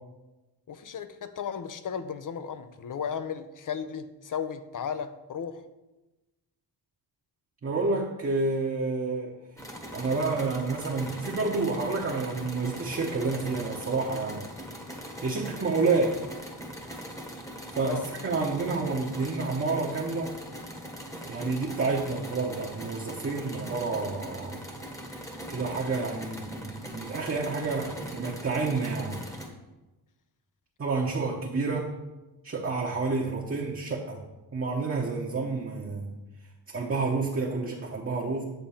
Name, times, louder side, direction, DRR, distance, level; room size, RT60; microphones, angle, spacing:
voice 1, 0.7-5.7 15.8-16.1 17.8-18.1, left 7 dB, 50° left, 11 dB, 0.6 m, -35 dB
voice 2, 7.6-9.3 9.9-14.4 15.2-16.1 17.7-20.3 21.2-24.6 25.5-29.2 30.8-31.9 32.4-34.2 34.5-36.1 36.7-38.4, right 3 dB, 35° right, -2 dB, 1.0 m, -29 dB
sound 1, 9.6-29.5, equal, 10° left, 1.2 m, -41 dB
9.1 x 3.8 x 7.0 m, 1.1 s
wide cardioid pair, 140°, 41 cm